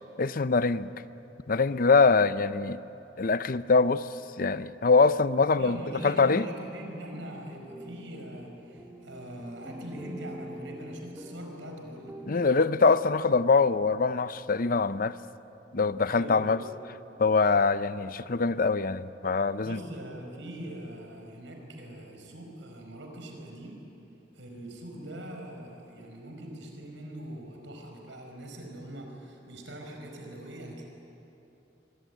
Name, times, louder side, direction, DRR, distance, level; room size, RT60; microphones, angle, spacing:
voice 1, 0.2-0.9 1.5-2.8 3.2-4.1 4.4-5.8 6.0-6.4 12.3-15.2 15.7-16.6 17.2-19.8, left 4 dB, 45° left, 0.6 m, -23 dB
voice 2, 5.6-12.2 16.1-16.6 19.6-23.8 24.3-30.8, right 1 dB, 80° right, 5.2 m, -42 dB
sound 1, 7.7-14.6, equal, 10° right, 2.0 m, -46 dB
24.5 x 23.5 x 9.2 m
head